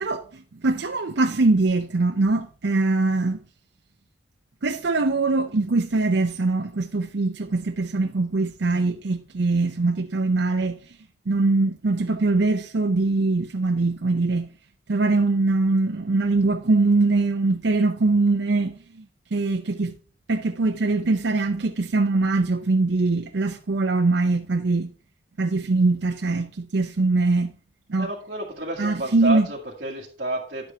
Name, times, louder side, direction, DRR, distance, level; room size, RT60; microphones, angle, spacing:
voice 1, 0.0-3.4 4.6-10.8 11.3-14.5 14.9-18.7 19.3-20.0 20.3-24.9 25.4-27.5 27.9-28.1 28.8-29.5, right 3 dB, 75° right, 0.6 m, -22 dB
voice 2, 28.0-30.7, right 2 dB, 50° right, 1.8 m, -30 dB
10.5 x 7.8 x 3.4 m
head